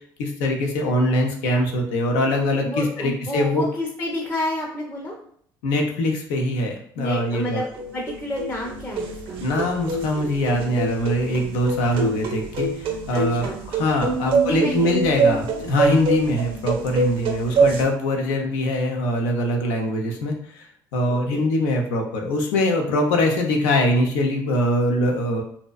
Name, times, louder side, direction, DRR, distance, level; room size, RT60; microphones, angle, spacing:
voice 1, 0.2-3.6 5.6-7.6 9.4-20.7 20.9-25.4, left 1 dB, 85° left, 2 dB, 0.5 m, -23 dB
voice 2, 2.6-5.1 7.0-7.6 7.9-9.4 13.1-13.6 14.2-14.9 21.1-21.5, left 1 dB, 20° left, -3 dB, 0.6 m, -30 dB
sound 1, 7.2-17.8, right 3 dB, 65° right, 0.5 m, -25 dB
2.6 x 2.1 x 2.3 m, 0.64 s
supercardioid pair, 70°, 10 cm